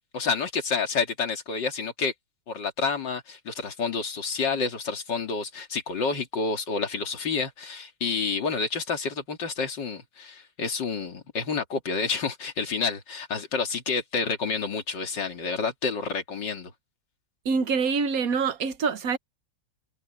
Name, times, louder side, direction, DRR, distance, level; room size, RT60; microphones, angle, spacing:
voice 1, 0.1-2.1 2.5-16.7, left 5 dB, 65° left, 3.1 m, -29 dB
voice 2, 17.4-19.2, right 5 dB, 55° right, 1.3 m, -25 dB
omnidirectional pair, 2.1 m